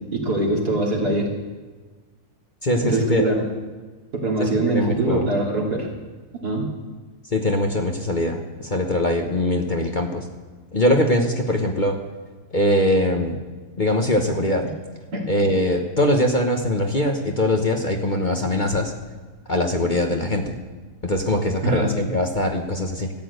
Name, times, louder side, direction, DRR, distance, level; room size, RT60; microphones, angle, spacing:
voice 1, 0.1-1.3 2.8-3.4 4.1-5.9 6.4-6.7 15.1-15.3 21.6-21.9, right 2 dB, 75° right, -2 dB, 3.3 m, -22 dB
voice 2, 2.6-3.3 4.4-5.3 7.3-10.2 10.7-12.0 12.5-13.4 13.8-14.6 15.3-18.9 19.5-20.5 21.0-23.1, left 1 dB, 35° left, 3 dB, 1.1 m, -22 dB
14.0 x 8.6 x 8.0 m, 1.4 s
omnidirectional pair, 1.7 m